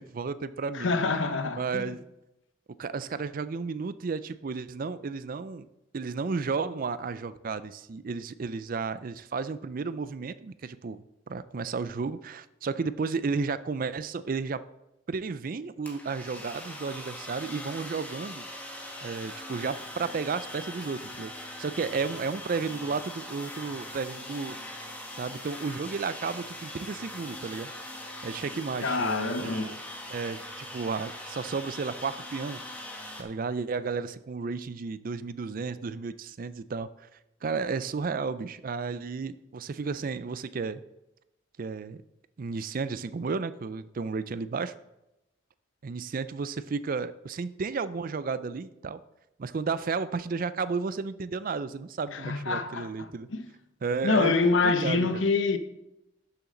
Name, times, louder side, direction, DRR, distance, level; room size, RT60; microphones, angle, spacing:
voice 1, 0.0-1.0 1.5-2.0 2.8-5.7 5.9-14.6 15.1-18.5 19.0-21.3 21.6-24.6 25.2-27.7 28.2-29.8 30.1-32.6 33.2-36.9 37.4-40.8 41.6-42.0 42.4-44.7 45.8-49.0 49.4-53.3 53.8-55.2, right 4 dB, 45° right, 0.4 m, -33 dB
voice 2, 0.8-1.8 28.8-29.8 52.1-52.9 53.3-53.5 54.0-55.6, left 4 dB, 80° left, 0.8 m, -26 dB
sound 1, 15.9-33.2, left 1 dB, 10° left, 1.4 m, -41 dB
12.0 x 7.0 x 3.9 m
head